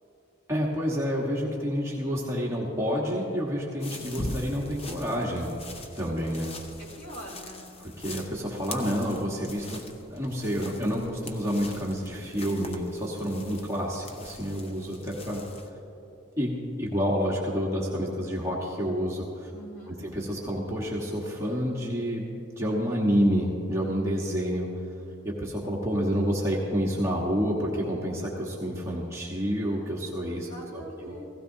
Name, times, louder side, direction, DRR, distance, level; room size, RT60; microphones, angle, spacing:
voice 1, 0.5-5.5 6.0-6.5 8.0-9.8 10.1-15.4 16.4-19.5 19.9-22.3 22.6-24.7 25.2-31.1, equal, 15° right, -3 dB, 1.3 m, -29 dB
sound 1, 3.8-15.7, left 2 dB, 30° left, 0.8 m, -42 dB
voice 2, 6.8-7.7 19.5-20.0 30.4-31.3, equal, 50° left, -3 dB, 3.1 m, -43 dB
16.5 x 16.0 x 2.8 m, 2.9 s
head